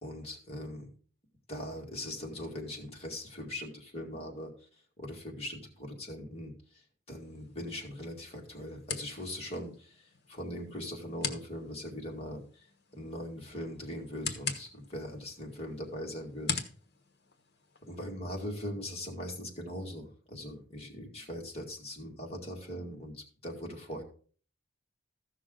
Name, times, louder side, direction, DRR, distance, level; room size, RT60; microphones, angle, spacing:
voice 1, 0.0-0.9 1.5-4.5 5.0-6.8 7.1-12.7 12.9-16.6 17.8-24.0, left 1 dB, 30° left, -1 dB, 2.2 m, -41 dB
sound 1, 7.1-18.1, left 5 dB, 55° left, 1.2 m, -43 dB
14.5 x 6.1 x 3.8 m, 0.43 s
head